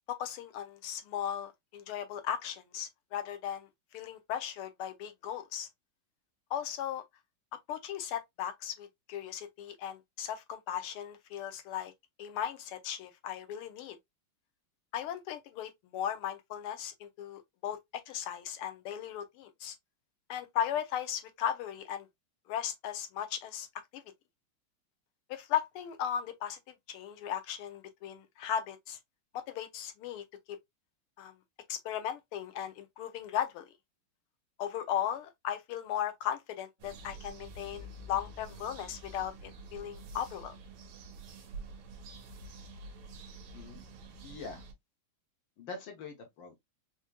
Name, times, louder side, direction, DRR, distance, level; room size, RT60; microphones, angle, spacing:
voice 1, 0.1-5.7 6.5-7.0 7.7-11.9 12.2-14.0 14.9-17.8 18.1-19.7 20.3-22.1 22.5-23.7 23.9-24.0 25.3-29.0 29.3-30.6 31.2-31.3 31.7-33.7 34.6-40.5, left 10 dB, 85° left, 1.6 m, -37 dB
sound 1, 36.8-44.7, right 2 dB, 80° right, 1.8 m, -48 dB
voice 2, 43.5-43.9 44.2-44.6 45.6-46.6, left 4 dB, 65° left, 1.5 m, -44 dB
4.8 x 2.8 x 2.2 m
omnidirectional pair, 2.4 m